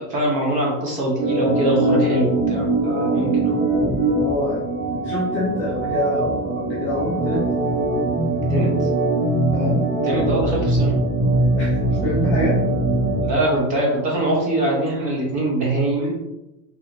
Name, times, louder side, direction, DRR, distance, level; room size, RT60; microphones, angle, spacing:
voice 1, 0.0-3.6 8.5-8.7 10.0-10.9 13.2-16.1, right 1 dB, 20° right, -3 dB, 0.6 m, -22 dB
Organ, 1.2-13.3, right 2 dB, 75° right, 1.4 m, -21 dB
voice 2, 4.2-4.6 4.9-7.4 9.5-9.8 11.6-12.6, left 1 dB, 25° left, -6 dB, 0.3 m, -26 dB
4.5 x 2.7 x 2.5 m, 0.96 s
supercardioid pair, 175°, 41 cm